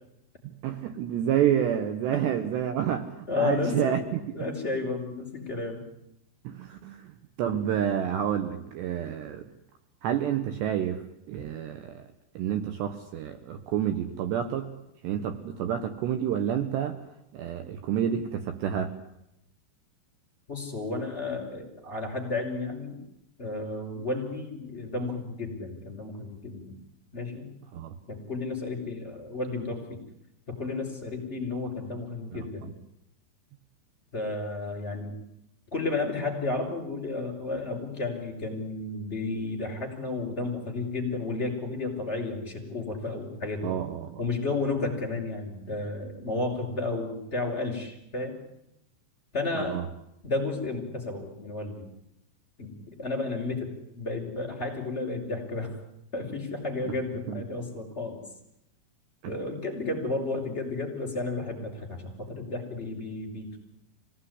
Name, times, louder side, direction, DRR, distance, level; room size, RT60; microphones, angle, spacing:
voice 1, 0.4-4.5 6.4-7.1 7.4-9.4 10.0-11.0 11.3-12.1 12.3-14.7 15.0-17.0 17.3-18.9 27.7-27.9 32.3-32.7 43.6-44.2 49.6-49.9 57.3-57.4 59.2-59.3, right 9 dB, 70° right, 8 dB, 3.2 m, -29 dB
voice 2, 3.3-4.0 4.3-5.8 20.5-23.0 23.4-26.8 27.1-27.5 28.1-30.0 30.5-32.6 34.1-35.1 35.7-43.7 44.2-48.4 49.3-49.8 50.2-51.9 52.6-53.7 53.9-55.8 56.1-58.2 59.3-63.6, left 3 dB, 15° left, 2 dB, 5.8 m, -32 dB
26.0 x 18.0 x 9.9 m, 0.81 s
omnidirectional pair, 5.7 m